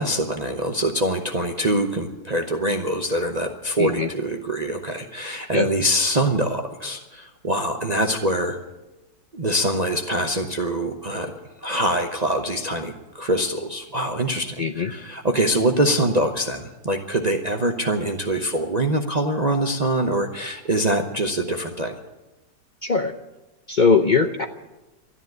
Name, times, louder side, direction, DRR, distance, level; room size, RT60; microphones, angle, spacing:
voice 1, 0.0-8.6 9.3-11.3 11.6-22.0, right 1 dB, 30° right, 3 dB, 0.8 m, -24 dB
voice 2, 3.8-4.1 5.5-5.7 14.6-14.9 22.8-23.1 23.7-24.5, left 4 dB, 60° left, 7 dB, 0.5 m, -20 dB
13.0 x 10.5 x 9.4 m, 1.1 s
omnidirectional pair, 1.7 m